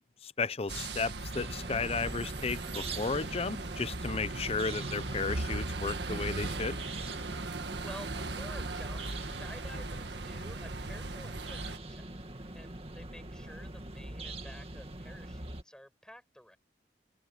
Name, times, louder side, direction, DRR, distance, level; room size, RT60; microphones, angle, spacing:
voice 1, 0.0-6.8, left 4 dB, 35° left, 0.6 m, -34 dB
sound 1, 0.7-11.8, right 2 dB, 75° right, 1.7 m, -38 dB
sound 2, 1.3-15.6, right 2 dB, 35° right, 2.2 m, -43 dB
voice 2, 7.8-16.6, equal, 5° left, 6.1 m, -51 dB
head